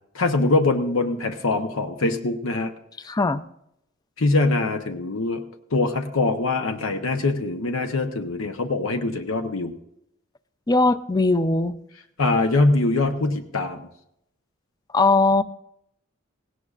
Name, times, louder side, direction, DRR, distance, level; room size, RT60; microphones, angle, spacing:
voice 1, 0.1-2.7 4.2-5.4 5.7-9.7 12.2-13.8, left 2 dB, 85° left, 6 dB, 0.9 m, -23 dB
voice 2, 3.0-3.4 10.7-11.7 14.9-15.4, left 3 dB, 20° left, 13 dB, 0.4 m, -19 dB
17.5 x 17.0 x 2.5 m, 0.79 s
head